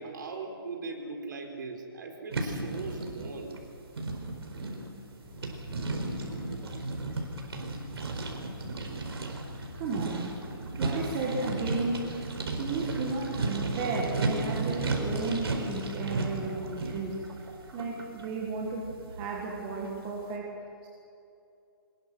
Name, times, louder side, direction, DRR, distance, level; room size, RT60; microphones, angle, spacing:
voice 1, 0.0-3.6, right 3 dB, 55° right, 2 dB, 4.4 m, -39 dB
sound 1, 2.3-20.0, right 2 dB, 85° right, 4.6 m, -34 dB
Fixed-wing aircraft airplane, 5.2-15.5, left 4 dB, 55° left, 6.5 m, -50 dB
voice 2, 9.7-12.2 12.6-17.2 17.7-20.9, right 4 dB, 15° right, -1 dB, 1.7 m, -34 dB
24.5 x 21.0 x 6.3 m, 2.7 s
hypercardioid pair, 175°, 13 cm